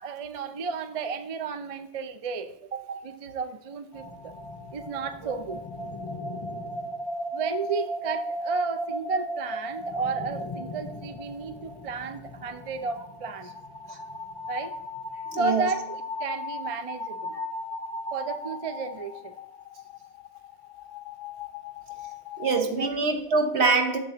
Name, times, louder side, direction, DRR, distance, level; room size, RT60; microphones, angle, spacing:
voice 1, 0.0-4.3 4.7-5.6 7.3-13.5 14.5-14.7 15.4-17.4 18.1-19.3 22.8-22.9, right 4 dB, 45° right, 0.5 m, -33 dB
sound 1, 3.9-22.6, left 1 dB, 40° left, 0.5 m, -37 dB
voice 2, 15.3-15.6 22.4-24.0, right 4 dB, 70° right, 1.3 m, -24 dB
7.2 x 6.9 x 2.9 m
omnidirectional pair, 1.2 m